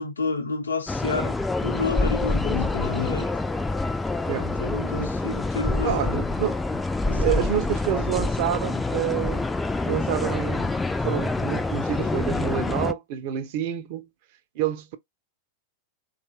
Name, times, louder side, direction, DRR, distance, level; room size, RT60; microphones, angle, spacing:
voice 1, 0.0-3.3 4.4-6.3 7.1-7.5, left 4 dB, 75° left, 0.8 m, -30 dB
sound 1, 0.9-12.9, left 2 dB, 10° left, 0.3 m, -26 dB
voice 2, 5.8-6.6 7.0-9.4 9.8-10.7 11.0-14.1 14.6-15.0, right 11 dB, 50° right, 0.5 m, -28 dB
2.9 x 2.4 x 2.9 m
figure-of-eight pair, 90°, 0 cm